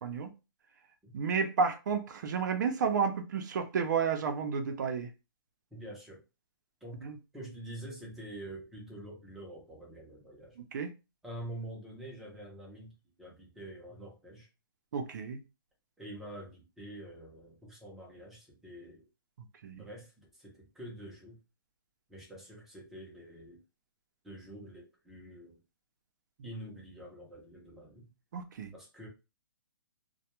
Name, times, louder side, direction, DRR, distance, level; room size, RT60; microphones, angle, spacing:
voice 1, 1.1-5.1 7.0-7.2 10.7-10.9 14.9-15.4 19.6-19.8 28.3-28.7, right 5 dB, 50° right, 0.5 m, -31 dB
voice 2, 5.7-6.2 6.8-10.6 11.2-14.5 16.0-19.1 19.7-21.4 22.1-23.6 24.2-25.6 26.4-28.1 28.7-29.1, right 1 dB, 5° right, 0.5 m, -46 dB
2.2 x 2.1 x 2.9 m
hypercardioid pair, 165°, 12 cm